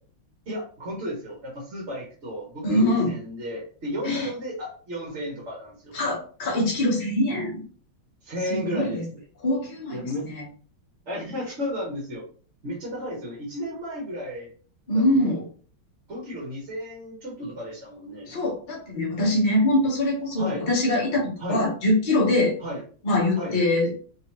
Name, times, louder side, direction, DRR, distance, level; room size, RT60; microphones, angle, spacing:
voice 1, 0.5-5.9 8.2-9.2 9.9-10.3 11.1-12.2 12.6-14.5 14.9-15.4 16.1-18.3 20.4-20.6 21.4-21.6 22.6-22.8 23.3-23.6, equal, 45° right, -3 dB, 1.1 m, -33 dB
voice 2, 2.6-3.1 4.0-4.3 5.9-7.6 8.5-9.0 9.4-10.0 14.9-15.4 18.3-22.5 23.0-23.9, left 1 dB, 40° left, -3 dB, 0.7 m, -23 dB
3.2 x 3.0 x 2.9 m, 0.42 s
omnidirectional pair, 2.2 m